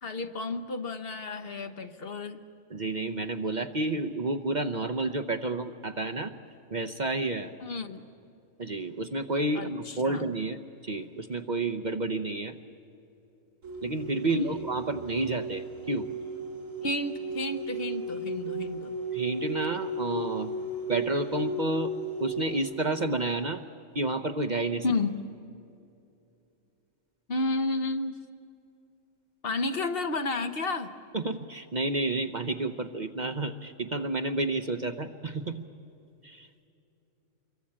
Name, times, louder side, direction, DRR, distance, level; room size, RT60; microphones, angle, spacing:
voice 1, 0.0-2.4 7.6-8.0 9.5-10.2 14.3-14.6 16.8-18.9 24.8-25.2 27.3-28.1 29.4-30.9, left 2 dB, 50° left, 8 dB, 1.1 m, -31 dB
voice 2, 2.7-6.3 6.7-7.5 8.6-10.6 10.8-12.5 13.8-16.1 19.1-20.5 20.9-21.9 22.2-23.6 23.9-24.8 31.1-35.6 36.2-36.5, right 2 dB, 40° right, 5 dB, 0.8 m, -30 dB
sound 1, 13.6-22.7, right 2 dB, 80° right, 4.1 m, -35 dB
26.5 x 23.5 x 8.7 m, 2.7 s
omnidirectional pair, 1.3 m